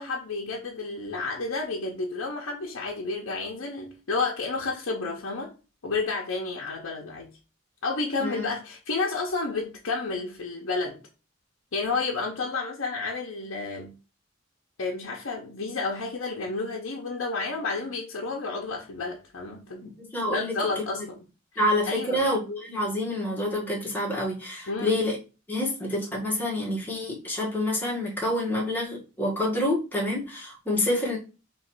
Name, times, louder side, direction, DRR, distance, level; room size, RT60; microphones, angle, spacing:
voice 1, 0.0-5.5 5.8-7.3 7.8-11.0 11.7-13.9 14.8-19.9 20.3-21.2 21.9-22.3 24.7-25.0, left 3 dB, 85° left, 0.7 m, -31 dB
voice 2, 20.0-20.6 21.6-25.2 25.5-31.2, left 1 dB, 10° left, 1.2 m, -27 dB
3.1 x 3.1 x 4.4 m
head